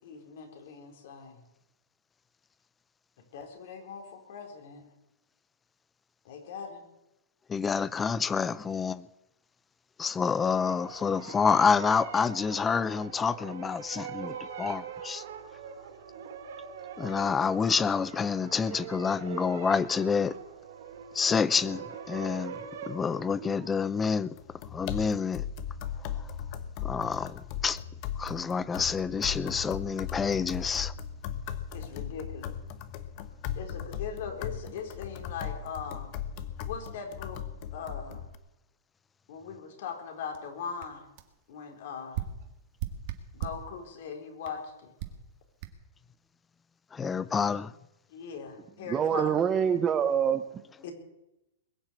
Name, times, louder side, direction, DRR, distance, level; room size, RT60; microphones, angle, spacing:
voice 1, 0.0-1.4 3.3-4.8 6.2-6.8 31.7-32.5 33.6-36.1 36.7-37.4 37.7-38.2 39.3-41.1 41.5-42.2 43.4-44.9 48.1-49.3 50.8-50.9, left 6 dB, 60° left, 4.1 m, -40 dB
voice 2, 7.5-9.1 10.0-15.2 17.0-20.4 21.1-24.4 24.7-25.4 26.8-27.8 28.2-30.9 46.9-47.7, left 6 dB, 15° left, 0.5 m, -28 dB
sound 1, 10.6-23.7, right 7 dB, 70° right, 2.7 m, -42 dB
sound 2, 24.4-38.4, left 8 dB, 40° left, 1.2 m, -38 dB
sound 3, 40.3-40.4 40.8-40.9 41.2-41.3 42.1-43.7 44.4-44.6 45.0-45.2 45.6-45.7, right 10 dB, 50° right, 1.9 m, -37 dB
voice 3, 48.9-50.4, right 8 dB, 20° right, 0.9 m, -25 dB
21.5 x 7.3 x 8.7 m
hypercardioid pair, 145°, 0 cm